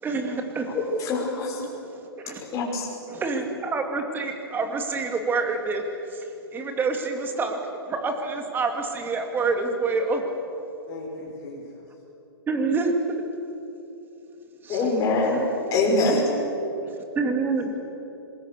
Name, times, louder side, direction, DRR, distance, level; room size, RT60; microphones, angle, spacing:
voice 1, 0.0-0.8 1.6-2.4 3.1-5.8 6.1-6.2 6.5-7.6 7.9-10.2 12.5-12.9 14.6-14.9 15.3-15.4 16.9-17.7, right 4 dB, 15° right, 4 dB, 2.6 m, -27 dB
voice 2, 0.7-1.7 2.5-2.9 14.7-15.4 15.7-16.3, left 2 dB, 25° left, -1 dB, 5.7 m, -23 dB
voice 3, 10.9-11.8 17.5-17.8, left 3 dB, 45° left, -5 dB, 5.8 m, -40 dB
26.5 x 20.5 x 6.9 m, 3.0 s
hypercardioid pair, 130°, 13 cm